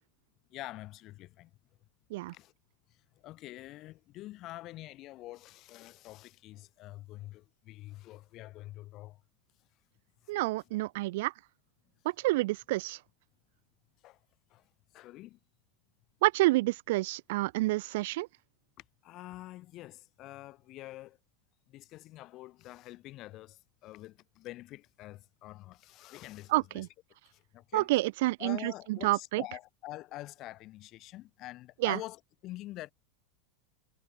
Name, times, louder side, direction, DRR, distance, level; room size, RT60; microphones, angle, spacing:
voice 1, 0.5-1.5 2.3-2.5 2.9-9.2 10.2-10.3 14.0-14.2 14.5-14.7 14.9-15.4 19.0-21.2 21.7-26.9 27.3-27.9 28.4-32.9, left 17 dB, 45° left, 1.4 m, -46 dB
voice 2, 10.3-11.3 12.0-13.0 16.2-18.3 26.5-26.9 27.7-29.4 31.8-32.0, right 20 dB, 65° right, 0.4 m, -28 dB
hypercardioid pair, 110°, 0 cm